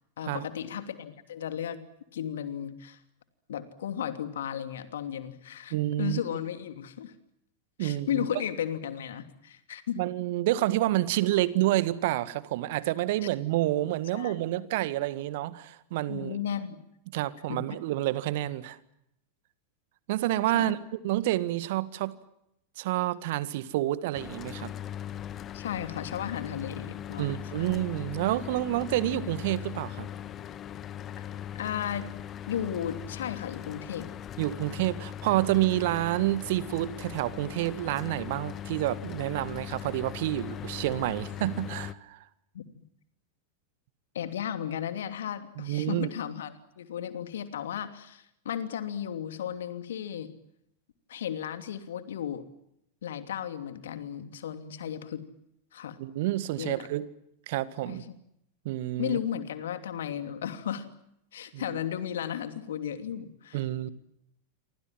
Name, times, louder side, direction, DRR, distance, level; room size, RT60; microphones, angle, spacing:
voice 1, 0.2-1.8 2.1-3.0 3.5-7.1 7.8-10.0 14.1-14.3 16.1-16.8 17.5-17.6 20.5-20.7 25.5-27.3 27.5-27.7 31.5-32.1 32.5-34.1 42.5-42.9 44.1-50.3 51.1-52.4 53.0-55.2 55.7-56.0 56.6-56.9 57.9-58.1 59.0-60.8 61.3-63.6, left 9 dB, 65° left, 10 dB, 2.9 m, -34 dB
voice 2, 5.7-6.2 7.8-8.3 10.0-16.4 17.1-18.8 20.1-20.8 21.0-22.1 22.8-24.7 27.2-30.1 34.4-42.2 45.6-46.1 56.0-57.1 57.5-58.0 58.7-59.2 61.5-61.8 63.5-63.9, right 15 dB, 55° right, 16 dB, 1.7 m, -29 dB
Mechanical fan, 24.1-41.9, left 10 dB, 30° left, 1.6 m, -39 dB
28.5 x 24.5 x 7.6 m, 0.79 s
figure-of-eight pair, 90°, 0 cm